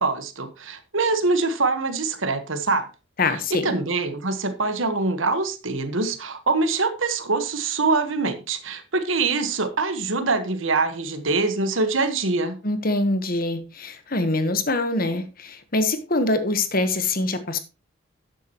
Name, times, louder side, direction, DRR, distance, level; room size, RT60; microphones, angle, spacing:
voice 1, 0.0-2.9 3.6-12.6, right 3 dB, 80° right, 9 dB, 1.4 m, -24 dB
voice 2, 3.2-3.7 12.6-17.6, left 2 dB, 45° left, 10 dB, 1.3 m, -24 dB
11.5 x 9.3 x 3.0 m, 0.30 s
head